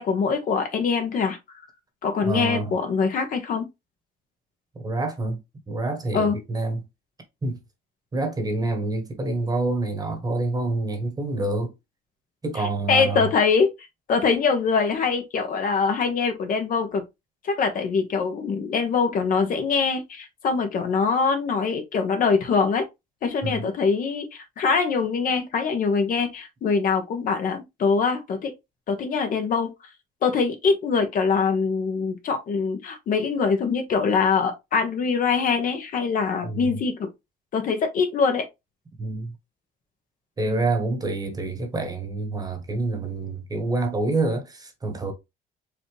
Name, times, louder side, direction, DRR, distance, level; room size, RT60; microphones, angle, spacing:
voice 1, 0.0-1.4 2.0-3.7 6.1-6.4 12.6-13.7 14.1-17.0 17.4-22.9 23.2-28.5 28.9-29.7 30.2-37.1 37.5-38.4, left 5 dB, 55° left, 1.1 m, -23 dB
voice 2, 2.2-2.7 4.8-5.4 5.7-6.8 7.4-7.6 8.1-11.7 12.4-13.3 23.4-23.7 36.4-36.7 39.0-39.3 40.4-45.1, right 2 dB, 20° right, 1.2 m, -27 dB
4.8 x 2.6 x 3.2 m
cardioid pair, 110°, 17 cm